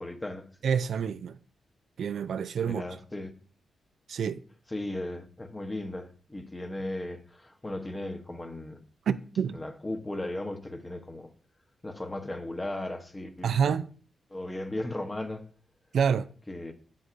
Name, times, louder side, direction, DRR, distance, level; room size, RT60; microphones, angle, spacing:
voice 1, 0.0-0.5 2.6-3.3 4.7-8.8 9.5-11.3 11.8-13.7 14.3-15.5 16.5-16.7, left 1 dB, 20° left, 1.0 m, -36 dB
voice 2, 0.6-1.4 2.0-2.8 4.1-4.4 9.1-9.6 13.4-13.9 15.9-16.3, right 7 dB, 75° right, 0.4 m, -27 dB
8.0 x 7.4 x 2.6 m
cardioid pair, 75°, 0 cm